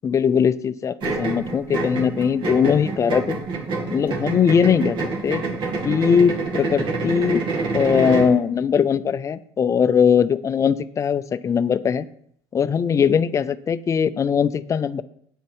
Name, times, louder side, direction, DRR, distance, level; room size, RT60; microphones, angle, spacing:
voice 1, 0.0-3.4 3.9-5.0 5.2-5.4 5.8-7.4 7.7-12.1 12.5-15.0, left 7 dB, 30° left, 15 dB, 0.5 m, -20 dB
sound 1, 1.0-8.4, right 3 dB, 50° right, 2.2 m, -27 dB
8.9 x 8.6 x 4.6 m, 0.66 s
supercardioid pair, 115°, 11 cm